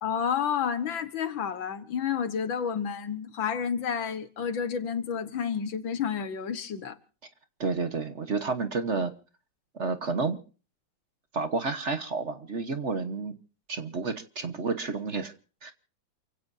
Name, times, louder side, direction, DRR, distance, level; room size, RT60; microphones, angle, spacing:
voice 1, 0.0-7.0, left 7 dB, 85° left, 2.2 m, -30 dB
voice 2, 7.6-9.1 9.7-10.4 11.3-13.3 13.7-15.3 15.6-15.7, right 4 dB, 40° right, 1.4 m, -30 dB
28.5 x 16.5 x 2.7 m
omnidirectional pair, 2.1 m